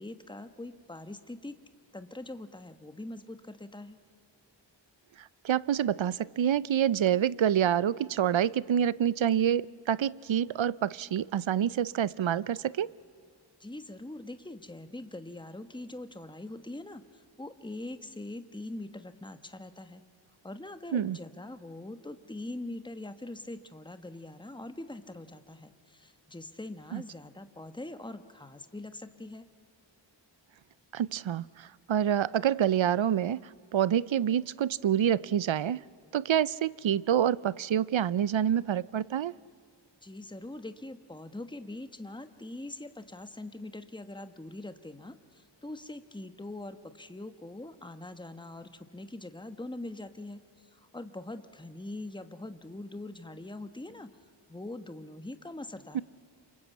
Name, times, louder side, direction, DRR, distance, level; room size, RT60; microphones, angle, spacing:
voice 1, 0.0-1.6 1.9-4.0 13.6-20.0 20.4-29.5 40.0-54.1 54.5-56.0, left 2 dB, 10° left, 1.2 m, -43 dB
voice 2, 5.4-12.9 20.9-21.2 26.9-27.0 30.9-33.4 33.7-35.8 36.1-39.3 55.9-56.0, right 9 dB, 90° right, 0.6 m, -27 dB
27.5 x 24.5 x 8.4 m
wide cardioid pair, 70°, 45 cm